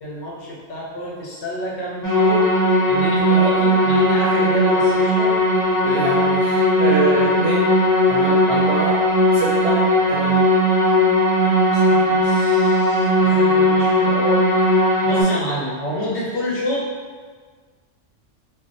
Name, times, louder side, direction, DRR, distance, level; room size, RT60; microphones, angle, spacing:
voice 1, 0.0-2.5 2.9-5.3 11.7-14.4 15.1-16.9, equal, 65° left, -5 dB, 1.0 m, -28 dB
sound 1, 2.0-15.2, equal, 5° left, 1.2 m, -17 dB
voice 2, 5.8-7.7 8.1-9.0 9.3-9.8 10.1-10.4 13.2-13.5, right 3 dB, 65° right, -6 dB, 0.7 m, -25 dB
2.8 x 2.0 x 3.8 m, 1.5 s
omnidirectional pair, 1.2 m